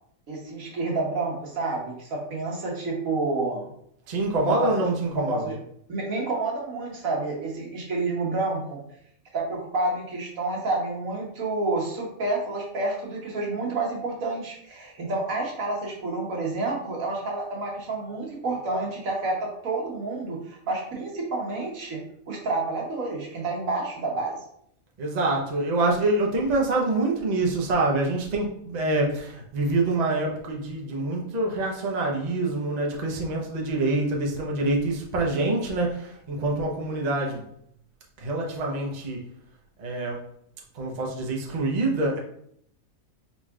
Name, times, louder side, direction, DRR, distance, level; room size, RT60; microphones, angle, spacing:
voice 1, 0.3-3.7 4.5-4.7 5.1-5.5 5.9-8.8 9.3-22.0 22.3-24.4, right 2 dB, 75° right, -2 dB, 1.5 m, -29 dB
voice 2, 4.1-5.6 25.0-37.4 38.2-39.2 39.8-40.2 40.7-42.2, right 2 dB, 40° right, -1 dB, 0.7 m, -26 dB
4.5 x 4.0 x 2.4 m, 0.70 s
omnidirectional pair, 1.5 m